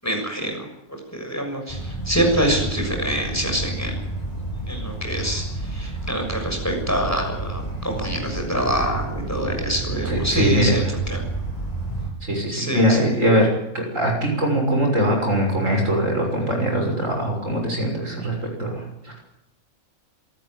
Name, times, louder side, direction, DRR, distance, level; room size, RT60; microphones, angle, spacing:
voice 1, 0.0-0.7 1.1-4.0 4.7-10.8 11.1-11.2 12.5-13.0, right 1 dB, 10° left, 3 dB, 6.7 m, -25 dB
sound 1, 1.7-12.1, right 2 dB, 25° left, 8.0 m, -30 dB
voice 2, 10.1-10.9 12.2-19.2, equal, 60° right, 2 dB, 7.0 m, -22 dB
27.0 x 14.0 x 9.6 m, 0.91 s
omnidirectional pair, 1.5 m